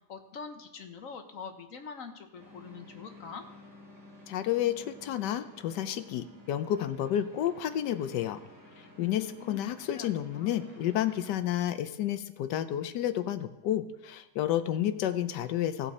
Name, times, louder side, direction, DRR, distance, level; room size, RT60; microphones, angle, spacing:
voice 1, 0.1-3.4 9.0-10.1 10.3-10.6, left 6 dB, 55° left, 6 dB, 1.2 m, -44 dB
sound 1, 2.4-11.3, left 1 dB, 55° right, 3.9 m, -53 dB
voice 2, 4.3-8.4 9.0-15.9, left 11 dB, 80° left, 11 dB, 1.2 m, -31 dB
17.5 x 5.8 x 4.2 m, 0.97 s
omnidirectional pair, 1.9 m